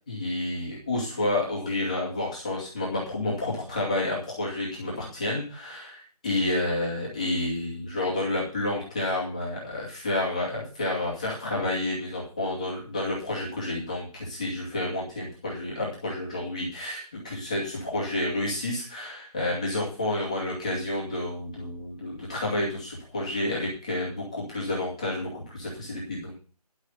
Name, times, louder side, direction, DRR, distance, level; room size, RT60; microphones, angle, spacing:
voice 1, 0.1-26.3, left 2 dB, 10° left, -4 dB, 2.2 m, -30 dB
11.0 x 6.5 x 8.2 m, 0.36 s
figure-of-eight pair, 180°, 20 cm